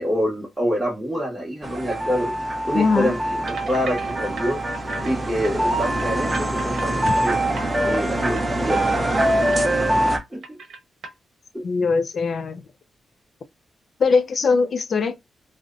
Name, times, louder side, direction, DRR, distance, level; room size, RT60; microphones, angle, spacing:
voice 1, 0.0-2.3 2.6-4.6 5.0-7.4 7.8-9.2 10.3-10.6, equal, 5° right, 0.8 m, -26 dB
sound 1, 1.6-10.2, right 1 dB, 20° right, 0.5 m, -23 dB
voice 2, 2.7-3.2 11.6-12.6 14.0-15.2, left 4 dB, 55° left, 0.3 m, -21 dB
sound 2, 3.5-5.1 5.4-5.5 6.0-7.9 8.2-8.5 8.7-8.9 9.2-10.2 10.4-11.1, right 4 dB, 70° right, 0.7 m, -39 dB
2.6 x 2.0 x 2.3 m
wide cardioid pair, 115°, 0 cm